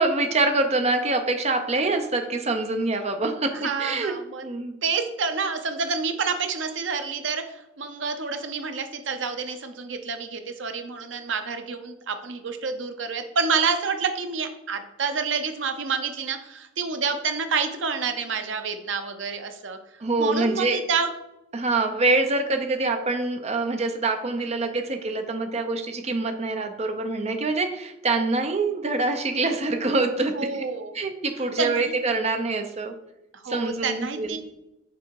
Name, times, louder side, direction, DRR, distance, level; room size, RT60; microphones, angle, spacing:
voice 1, 0.0-4.1 4.4-4.7 20.0-20.8 21.5-30.6 30.9-32.9 33.5-34.4, right 3 dB, 35° right, 6 dB, 0.7 m, -25 dB
voice 2, 3.6-4.4 4.8-19.8 20.2-21.1 30.3-31.0 31.6-31.9 33.4-34.4, right 5 dB, 70° right, 7 dB, 0.8 m, -28 dB
6.1 x 4.2 x 4.7 m, 0.89 s
head